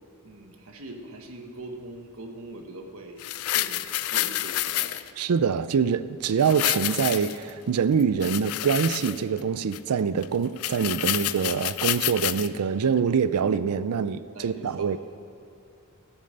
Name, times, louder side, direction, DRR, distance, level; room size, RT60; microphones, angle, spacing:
voice 1, 0.2-5.0 14.0-15.0, right 2 dB, 65° right, 3 dB, 1.4 m, -42 dB
sound 1, 3.2-5.1 6.4-7.5 8.0-9.4 9.7-9.8 10.2-10.3 10.6-12.5 13.0-13.1, left 14 dB, 75° left, 0.4 m, -28 dB
voice 2, 5.2-14.2 14.4-15.0, right 6 dB, 80° right, 14 dB, 0.4 m, -25 dB
14.5 x 8.2 x 6.6 m, 2.7 s
head